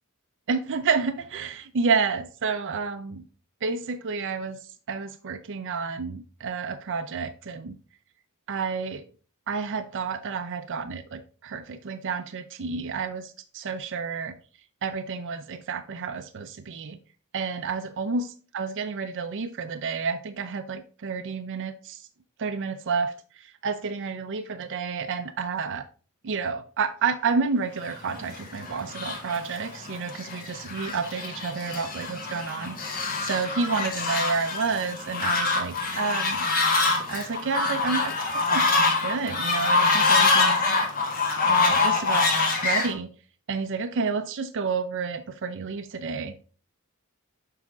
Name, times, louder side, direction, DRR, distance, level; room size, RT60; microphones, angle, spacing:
voice 1, 0.5-3.2 3.6-7.8 8.5-9.0 9.5-14.3 14.8-17.0 17.3-22.1 22.4-25.8 26.2-36.5 37.1-40.7 41.4-42.3 42.6-43.1 43.5-46.4, right 5 dB, 55° right, 7 dB, 0.5 m, -30 dB
Fowl, 28.1-42.9, left 3 dB, 40° left, 1.5 m, -25 dB
7.3 x 5.0 x 3.5 m, 0.39 s
head